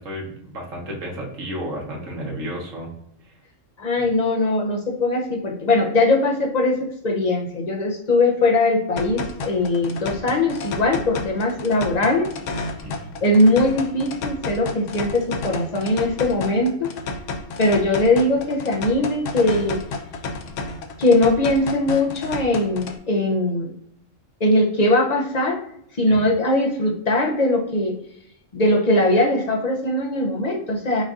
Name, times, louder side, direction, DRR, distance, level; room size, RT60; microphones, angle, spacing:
voice 1, 0.0-2.9 3.2-3.4 12.8-13.2 26.1-26.2, equal, 75° right, -2 dB, 1.6 m, -32 dB
voice 2, 3.8-12.3 13.2-16.9 17.6-19.8 21.0-23.7 24.4-25.6 26.0-28.0 28.5-31.0, left 2 dB, 40° left, 0 dB, 0.7 m, -20 dB
sound 1, 9.0-23.0, left 3 dB, 70° left, 0.9 m, -32 dB
5.3 x 2.6 x 3.6 m, 0.71 s
omnidirectional pair, 1.3 m